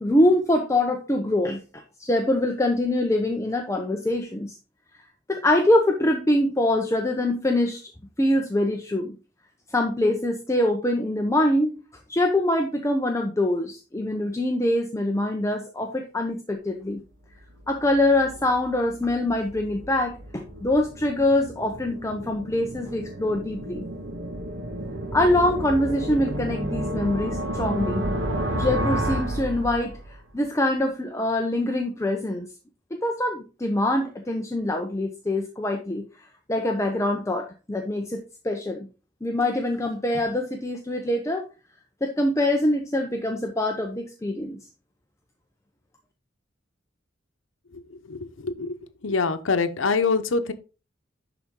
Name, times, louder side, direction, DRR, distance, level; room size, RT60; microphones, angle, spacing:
voice 1, 0.0-4.6 5.3-7.8 8.2-9.2 9.7-11.8 12.1-17.0 17.7-23.8 25.1-28.0 28.5-32.5 33.0-36.0 36.5-38.9 39.2-41.4 42.0-44.6, left 1 dB, 15° left, 3 dB, 0.7 m, -24 dB
sound 1, 17.3-30.2, right 1 dB, 65° right, 1.4 m, -32 dB
voice 2, 47.7-50.5, left 4 dB, 90° left, 10 dB, 0.8 m, -25 dB
10.5 x 4.2 x 3.7 m, 0.33 s
head